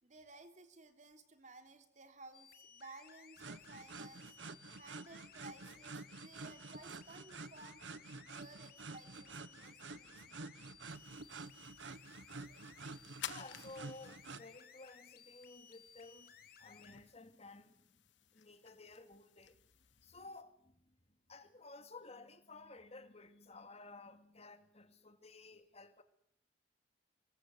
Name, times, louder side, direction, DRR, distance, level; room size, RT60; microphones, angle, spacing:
voice 1, 0.0-4.3 4.8-7.8 8.2-10.4, right 3 dB, 40° right, 3.4 m, -57 dB
sound 1, 2.3-17.0, left 7 dB, 55° left, 2.5 m, -60 dB
sound 2, 3.4-14.5, right 3 dB, 80° right, 1.2 m, -50 dB
sound 3, 10.9-20.4, left 11 dB, 75° left, 1.1 m, -55 dB
voice 2, 13.2-18.0 18.3-19.6 20.0-21.0 21.3-26.0, left 3 dB, 35° left, 2.6 m, -55 dB
26.0 x 22.0 x 9.4 m
head